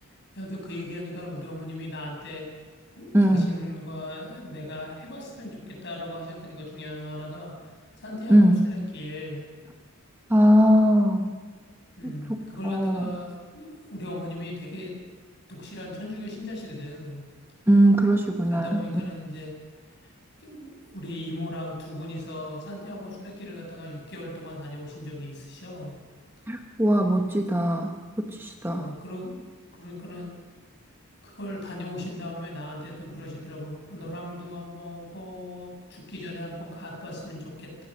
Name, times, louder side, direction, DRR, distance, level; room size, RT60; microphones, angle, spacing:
voice 1, 0.3-2.5 2.9-9.5 12.0-15.0 15.5-17.3 18.5-19.5 20.0-20.1 20.4-26.0 28.6-29.4 29.7-30.3 31.2-37.8, left 1 dB, 50° left, 0 dB, 7.9 m, -38 dB
voice 2, 3.1-3.5 8.3-8.6 10.3-11.3 12.0-13.1 17.7-18.8 26.5-28.9, equal, 10° right, 3 dB, 1.1 m, -20 dB
25.5 x 18.0 x 6.6 m, 1.4 s
head